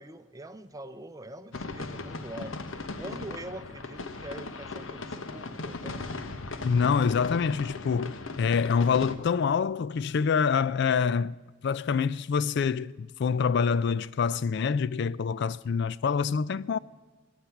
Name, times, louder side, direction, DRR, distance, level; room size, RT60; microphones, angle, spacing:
voice 1, 0.0-6.1, right 1 dB, 20° right, 0.6 m, -44 dB
sound 1, 1.5-9.1, left 3 dB, 85° left, 1.0 m, -38 dB
voice 2, 6.6-11.3 11.6-16.8, left 6 dB, 60° left, 0.4 m, -26 dB
23.0 x 9.9 x 5.8 m
head